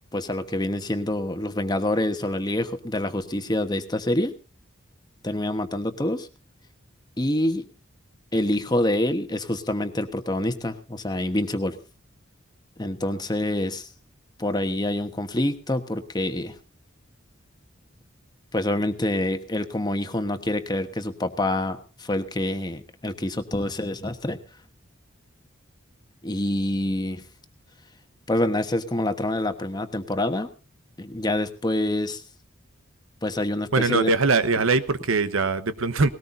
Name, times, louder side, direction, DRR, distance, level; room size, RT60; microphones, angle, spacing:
voice 1, 0.1-4.3 5.2-6.3 7.2-7.7 8.3-11.8 12.8-13.9 14.4-16.5 18.5-24.4 26.2-27.2 28.3-30.5 31.0-32.2 33.2-34.1, left 1 dB, 20° left, 7 dB, 1.2 m, -26 dB
voice 2, 33.7-36.1, right 4 dB, 90° right, 12 dB, 1.1 m, -22 dB
19.5 x 18.0 x 2.7 m, 0.32 s
head